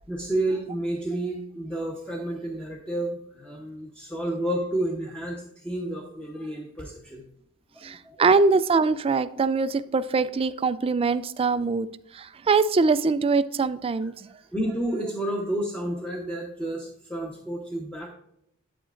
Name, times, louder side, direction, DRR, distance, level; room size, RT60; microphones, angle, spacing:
voice 1, 0.1-7.3 7.7-8.2 14.3-18.1, right 1 dB, 5° left, 0.9 m, -30 dB
voice 2, 7.8-11.9 12.2-14.1, right 4 dB, 25° right, 0.3 m, -23 dB
8.9 x 8.7 x 2.5 m
head